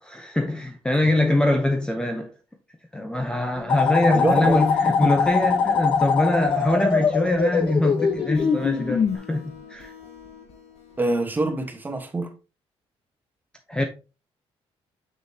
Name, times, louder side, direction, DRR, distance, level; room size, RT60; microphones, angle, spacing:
voice 1, 0.0-2.3 2.9-9.9 13.7-13.8, left 1 dB, 10° left, 0.7 m, -23 dB
sound 1, 3.5-11.1, left 5 dB, 80° left, 2.1 m, -44 dB
sound 2, 3.7-9.2, left 6 dB, 50° left, 1.0 m, -22 dB
voice 2, 4.1-4.7 5.0-5.1 11.0-12.3, right 2 dB, 15° right, 1.2 m, -25 dB
6.4 x 6.2 x 2.8 m
cardioid pair, 135°, 11 cm